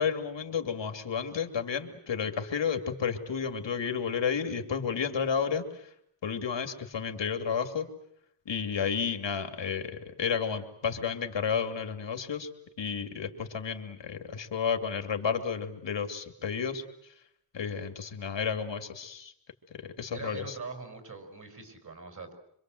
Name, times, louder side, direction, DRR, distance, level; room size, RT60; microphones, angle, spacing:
voice 1, 0.0-5.8 6.2-7.9 8.5-12.5 12.8-16.8 17.5-19.3 20.0-20.5, left 6 dB, 90° left, 6 dB, 2.7 m, -31 dB
voice 2, 20.1-22.3, right 4 dB, 45° right, 5 dB, 5.8 m, -42 dB
26.5 x 24.5 x 7.8 m, 0.70 s
wide cardioid pair, 100°, 43 cm